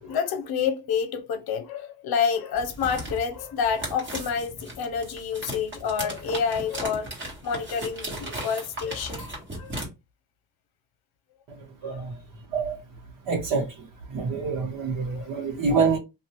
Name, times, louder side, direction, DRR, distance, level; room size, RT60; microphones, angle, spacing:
voice 1, 0.0-7.1 7.4-9.7 11.8-12.2 15.1-15.3, left 6 dB, 55° left, 0.8 m, -28 dB
sound 1, 2.5-9.9, right 1 dB, 25° right, 1.6 m, -36 dB
voice 2, 11.8-12.1 12.5-12.8 13.3-13.6 14.1-16.0, right 5 dB, 70° right, 1.2 m, -26 dB
2.7 x 2.6 x 3.0 m
cardioid pair, 120°, 45 cm